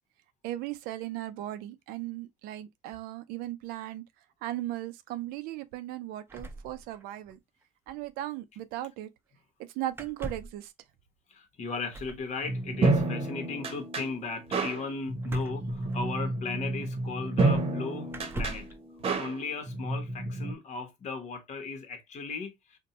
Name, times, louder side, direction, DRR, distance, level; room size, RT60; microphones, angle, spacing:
voice 1, 0.4-4.0 4.4-7.4 7.9-9.1 9.7-10.7, right 14 dB, 80° right, 0.5 m, -37 dB
sound 1, 6.3-7.4 7.6-7.7 7.9-8.1 9.9-10.6 11.9-12.3 15.2-16.4 17.3-17.4 18.1-18.8, right 2 dB, 15° right, 0.6 m, -41 dB
voice 2, 11.3-18.7 19.2-22.8, left 4 dB, 50° left, 1.1 m, -37 dB
sound 2, 12.4-20.5, right 2 dB, 40° right, 0.9 m, -30 dB
2.6 x 2.2 x 4.0 m
supercardioid pair, 90°, 15 cm